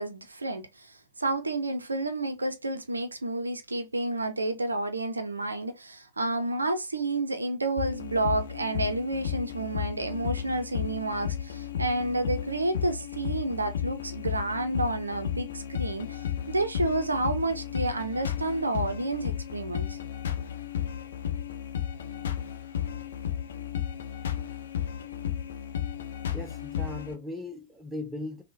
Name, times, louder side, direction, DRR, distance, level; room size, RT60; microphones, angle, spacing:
voice 1, 0.0-20.0, right 2 dB, 80° right, 0.5 m, -30 dB
sound 1, 7.8-27.1, left 9 dB, 65° left, 0.4 m, -33 dB
voice 2, 26.3-28.4, left 2 dB, 5° right, 0.5 m, -38 dB
3.6 x 2.1 x 2.5 m
figure-of-eight pair, 90°, 0 cm